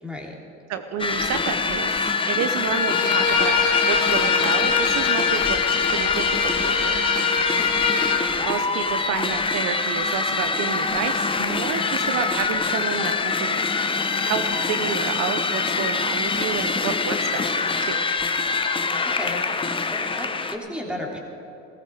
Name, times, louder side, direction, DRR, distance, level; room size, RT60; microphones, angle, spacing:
voice 1, 0.0-0.3 19.1-19.4 19.9-21.2, left 1 dB, 5° right, -1 dB, 3.1 m, -33 dB
voice 2, 0.7-5.6 5.9-6.4 6.6-7.2 8.4-13.9 14.2-18.0, right 7 dB, 60° right, 9 dB, 0.8 m, -30 dB
sound 1, 1.0-20.6, left 4 dB, 15° left, 1.0 m, -24 dB
Bowed string instrument, 2.7-8.2, left 6 dB, 50° left, 2.8 m, -23 dB
17.0 x 15.0 x 4.7 m, 3.0 s
supercardioid pair, 95°, 31 cm